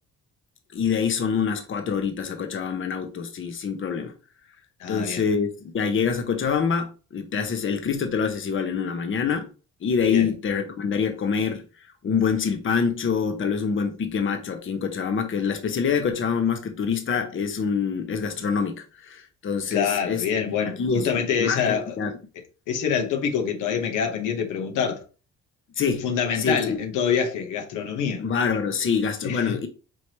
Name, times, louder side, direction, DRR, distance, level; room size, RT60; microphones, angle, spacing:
voice 1, 0.7-4.1 4.9-9.5 9.8-11.6 12.0-20.2 20.8-22.2 25.8-26.0 26.4-26.8 28.2-29.7, left 6 dB, 40° left, 0.8 m, -25 dB
voice 2, 4.8-5.2 10.1-10.3 19.7-21.9 22.7-25.0 26.0-28.2 29.2-29.6, left 7 dB, 85° left, 1.0 m, -26 dB
4.6 x 3.1 x 2.9 m
cardioid pair, 90°, 30 cm